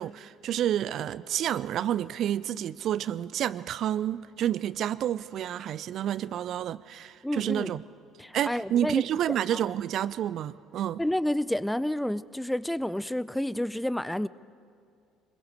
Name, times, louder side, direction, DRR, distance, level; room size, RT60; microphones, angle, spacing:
voice 1, 0.0-7.8 8.3-11.0, right 11 dB, 50° right, 18 dB, 0.4 m, -29 dB
voice 2, 7.2-7.8 8.2-9.0 9.5-9.6 11.0-14.3, left 1 dB, 5° left, 19 dB, 0.5 m, -30 dB
25.0 x 21.5 x 6.6 m, 2.4 s
figure-of-eight pair, 55°, 0 cm